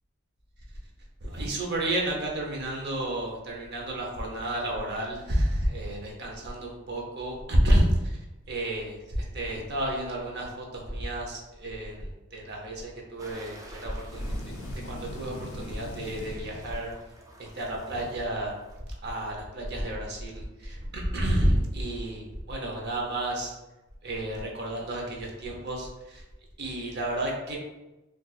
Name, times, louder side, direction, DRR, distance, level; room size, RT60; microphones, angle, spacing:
voice 1, 1.2-16.9 17.4-18.5 19.0-23.5 24.0-26.2 26.6-27.6, right 1 dB, 55° right, -1 dB, 0.7 m, -30 dB
sound 1, 13.2-18.8, right 1 dB, 15° right, 0.4 m, -51 dB
sound 2, 14.0-17.2, left 2 dB, 85° left, 0.4 m, -42 dB
4.0 x 2.4 x 2.3 m, 1.0 s
head